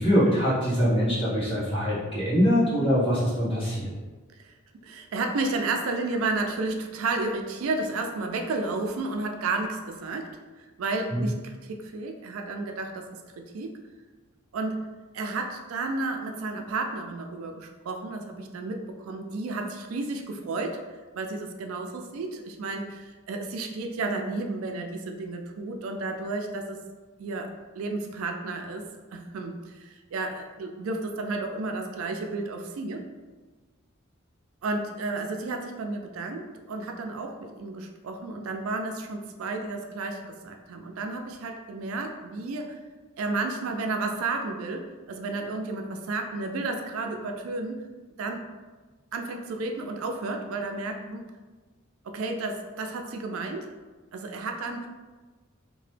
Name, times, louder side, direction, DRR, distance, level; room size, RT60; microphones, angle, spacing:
voice 1, 0.0-3.9 11.1-11.2, equal, 25° left, -10 dB, 1.2 m, -23 dB
voice 2, 4.8-10.3 10.6-13.1 13.4-13.7 14.5-14.9 15.1-20.8 21.1-26.8 27.2-28.8 29.1-33.0 34.6-42.8 43.2-47.8 48.2-48.4 49.1-51.2 52.0-53.7 54.1-54.9, right 3 dB, 90° right, 4 dB, 0.4 m, -32 dB
2.9 x 2.1 x 3.2 m, 1.3 s
head